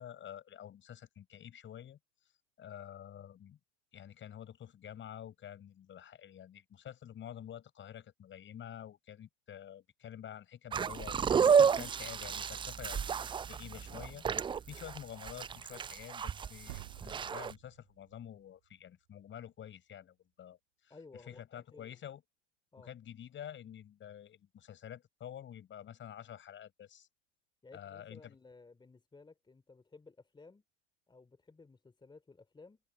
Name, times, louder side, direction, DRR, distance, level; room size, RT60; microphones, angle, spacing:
voice 1, 0.0-2.0 2.6-3.6 3.9-14.3 14.7-20.9 21.3-22.2 22.8-27.1 27.7-28.3, left 10 dB, 35° left, 6.7 m, -49 dB
sound 1, 10.7-17.5, right 6 dB, 15° right, 0.5 m, -31 dB
sound 2, 16.7-19.4, right 22 dB, 60° right, 1.7 m, -52 dB
voice 2, 20.9-22.0 22.7-22.9 27.6-30.6 31.1-32.8, left 3 dB, 15° left, 3.6 m, -56 dB
open air
hypercardioid pair, 90°, 35 cm